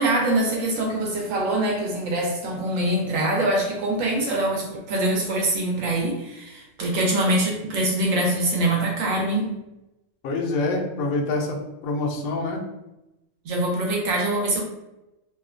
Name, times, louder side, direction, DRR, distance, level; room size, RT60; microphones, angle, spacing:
voice 1, 0.0-9.5 13.4-14.6, right 1 dB, 75° right, 0 dB, 1.0 m, -24 dB
voice 2, 10.2-12.6, left 2 dB, 80° left, 1 dB, 1.0 m, -26 dB
2.8 x 2.1 x 2.4 m, 0.95 s
omnidirectional pair, 1.5 m